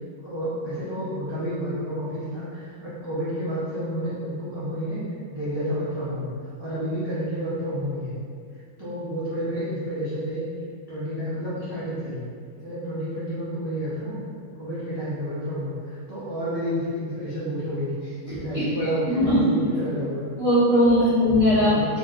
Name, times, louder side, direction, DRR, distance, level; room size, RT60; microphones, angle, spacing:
voice 1, 0.2-5.0 5.3-6.3 6.6-8.1 8.8-10.5 10.9-12.2 12.6-14.2 14.6-18.0 18.3-20.2 21.6-21.9, equal, 40° right, -12 dB, 0.3 m, -30 dB
voice 2, 18.2-18.7 19.1-19.4 20.4-21.8, equal, 30° left, -11 dB, 0.8 m, -19 dB
2.8 x 2.1 x 3.6 m, 2.2 s
omnidirectional pair, 1.5 m